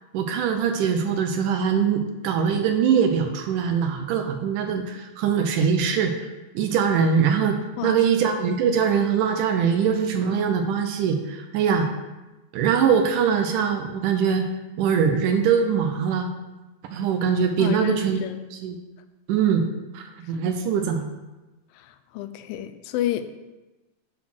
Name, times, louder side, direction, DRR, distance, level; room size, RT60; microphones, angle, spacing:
voice 1, 0.1-6.3 6.5-11.9 12.5-14.5 14.8-16.3 16.9-18.2 18.6-18.8 19.3-19.6 19.9-21.1, right 7 dB, 75° right, 5 dB, 2.0 m, -22 dB
voice 2, 17.6-18.4 20.2-20.3 21.7-23.2, left 12 dB, 90° left, 10 dB, 2.4 m, -30 dB
9.6 x 4.1 x 6.1 m, 1.1 s
omnidirectional pair, 4.0 m